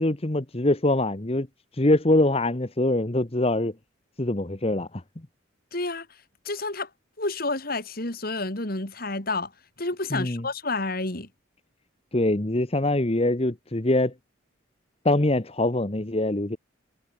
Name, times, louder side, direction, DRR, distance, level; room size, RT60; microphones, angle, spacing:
voice 1, 0.0-1.5 1.8-3.7 4.2-4.9 10.1-10.5 12.1-14.1 15.0-16.6, left 1 dB, 30° left, 1.2 m, -23 dB
voice 2, 5.7-6.1 6.4-6.9 7.2-9.5 9.8-11.3, left 2 dB, 50° left, 3.5 m, -29 dB
head